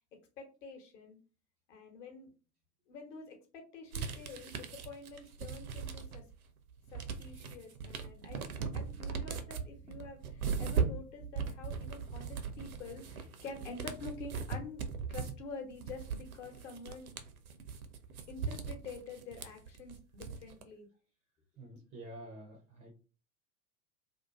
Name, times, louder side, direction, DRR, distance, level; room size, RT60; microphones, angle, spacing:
voice 1, 0.4-1.2 1.7-2.3 2.9-6.2 6.9-14.8 15.1-17.1 18.3-20.9, left 4 dB, 55° left, 3 dB, 1.0 m, -48 dB
sound 1, 3.9-6.3 6.7-20.6, right 6 dB, 75° right, 0.5 m, -39 dB
voice 2, 21.6-22.9, right 1 dB, 20° right, 0 dB, 0.4 m, -49 dB
2.5 x 2.3 x 2.3 m, 0.35 s
figure-of-eight pair, 85°, 44 cm